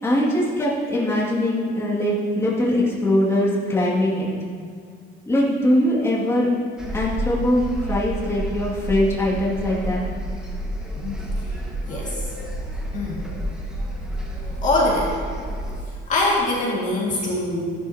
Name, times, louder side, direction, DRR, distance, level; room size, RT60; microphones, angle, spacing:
voice 1, 0.0-4.3 5.3-6.5 6.9-10.0, left 1 dB, 10° left, -7 dB, 2.3 m, -21 dB
sound 1, 6.8-15.8, right 1 dB, 5° right, 1.6 m, -30 dB
voice 2, 11.8-12.1 12.9-13.2 14.6-15.1 16.1-17.6, left 2 dB, 35° left, -5 dB, 2.0 m, -23 dB
14.5 x 12.0 x 2.9 m, 2.1 s
cardioid pair, 170°, 21 cm